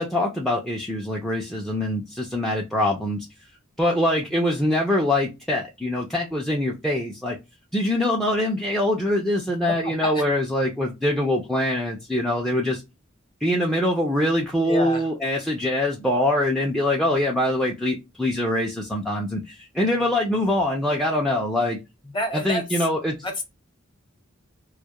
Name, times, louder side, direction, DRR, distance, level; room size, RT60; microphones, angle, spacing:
voice 1, 0.0-3.3 3.8-7.4 7.7-12.8 13.4-21.8 22.3-23.2, left 1 dB, ahead, 0.4 m, -24 dB
voice 2, 9.6-10.3 14.6-15.1 22.1-22.9 23.2-23.4, equal, 25° left, 0.8 m, -29 dB
2.2 x 2.1 x 2.7 m
head